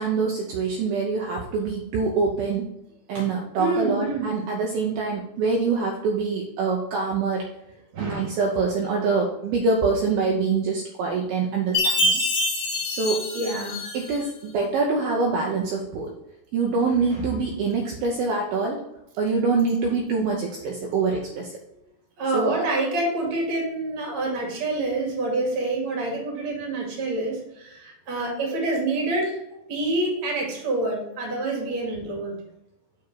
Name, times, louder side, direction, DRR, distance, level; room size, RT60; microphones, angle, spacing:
voice 1, 0.0-2.7 3.1-7.5 8.0-12.2 12.9-13.3 13.9-16.1 16.5-18.8 19.2-21.5 22.3-22.6, right 4 dB, 80° right, 0 dB, 2.3 m, -25 dB
voice 2, 3.6-4.3 7.9-8.4 13.3-13.8 22.2-32.4, right 2 dB, 40° right, -1 dB, 2.0 m, -27 dB
Chime, 11.7-14.2, left 1 dB, 70° left, 1.3 m, -25 dB
7.0 x 4.8 x 4.6 m, 0.83 s
omnidirectional pair, 5.0 m